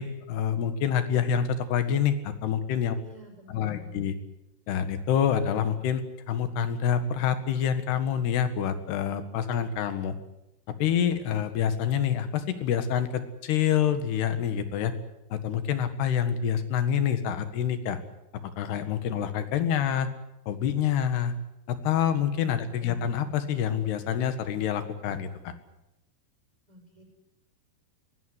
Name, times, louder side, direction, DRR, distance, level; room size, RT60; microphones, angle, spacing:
voice 1, 0.0-3.0 3.5-4.2 4.7-6.0 6.3-10.2 10.8-14.9 15.3-18.0 18.6-20.1 20.5-21.4 21.7-25.5, left 8 dB, 90° left, 10 dB, 3.8 m, -27 dB
voice 2, 2.9-4.0 26.7-27.0, right 2 dB, 10° right, -1 dB, 6.5 m, -51 dB
21.5 x 17.5 x 9.8 m, 0.92 s
omnidirectional pair, 4.6 m